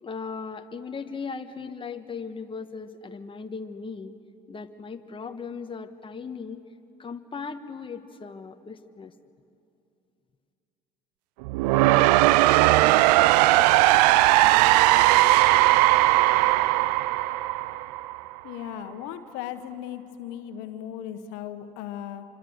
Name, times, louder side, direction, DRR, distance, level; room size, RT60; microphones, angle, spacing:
voice 1, 0.0-4.1 4.5-6.6 7.0-9.1, left 5 dB, 25° left, 7 dB, 1.4 m, -37 dB
sound 1, 11.4-18.4, right 17 dB, 85° right, 0.5 m, -19 dB
voice 2, 18.4-22.2, left 10 dB, 75° left, 9 dB, 1.5 m, -37 dB
27.0 x 25.0 x 8.1 m, 2.6 s
hypercardioid pair, 75°, 20 cm